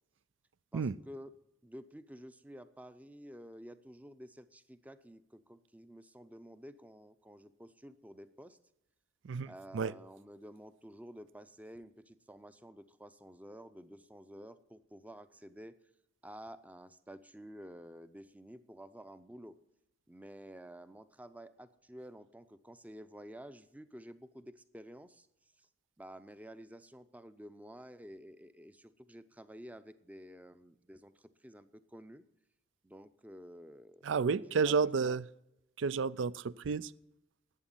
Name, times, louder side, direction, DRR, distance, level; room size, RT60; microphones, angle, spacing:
voice 1, 0.7-1.3 1.6-8.6 9.5-15.8 16.2-19.6 20.1-25.3 25.6-25.7 26.0-32.2 32.8-34.1 34.4-35.2, equal, 10° right, 13 dB, 0.6 m, -51 dB
voice 2, 9.2-9.9 34.0-35.2 35.8-36.9, right 5 dB, 70° right, 20 dB, 0.4 m, -31 dB
11.0 x 8.8 x 9.1 m, 0.87 s
head